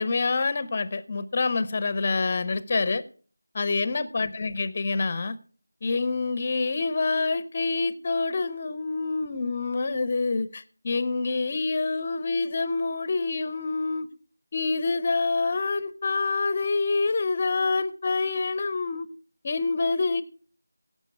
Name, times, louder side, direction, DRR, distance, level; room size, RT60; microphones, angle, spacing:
voice 1, 0.0-3.0 3.5-5.4 5.8-14.1 14.5-19.1 19.4-20.2, left 3 dB, 25° left, 0.6 m, -26 dB
17.0 x 7.2 x 4.6 m
figure-of-eight pair, 170°, 0 cm